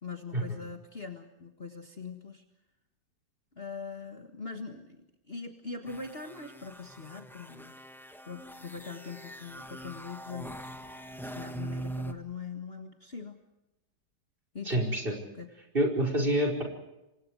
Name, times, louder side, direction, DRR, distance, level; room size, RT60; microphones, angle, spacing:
voice 1, 0.0-2.4 3.5-7.8 8.3-10.7 11.2-13.4 14.5-14.9 15.4-15.5, left 4 dB, 35° left, 5 dB, 1.8 m, -42 dB
sound 1, 5.9-12.1, right 1 dB, ahead, 1.4 m, -42 dB
voice 2, 14.7-15.2 15.7-16.6, right 1 dB, 30° right, 3 dB, 5.2 m, -27 dB
28.0 x 24.0 x 4.8 m, 0.96 s
omnidirectional pair, 1.9 m